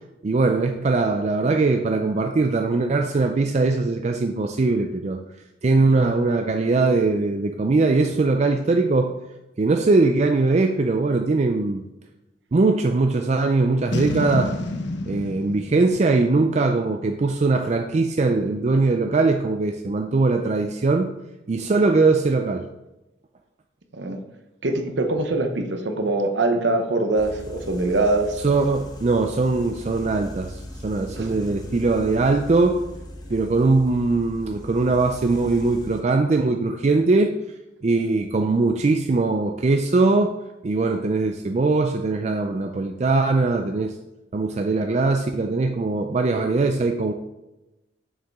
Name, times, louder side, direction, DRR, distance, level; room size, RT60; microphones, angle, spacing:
voice 1, 0.2-5.2 5.6-9.1 9.6-11.8 12.5-14.5 15.1-21.1 21.5-22.6 28.4-32.8 33.3-37.3 37.8-40.3 40.6-43.9 44.3-47.1, right 3 dB, 35° right, 4 dB, 0.4 m, -21 dB
Boom, 13.9-17.2, left 2 dB, 60° left, 0.8 m, -30 dB
voice 2, 24.6-28.4 31.2-31.3, right 2 dB, 60° right, 5 dB, 0.9 m, -23 dB
sound 1, 27.1-36.0, left 1 dB, 20° left, 1.0 m, -39 dB
7.0 x 6.4 x 3.5 m, 0.99 s
head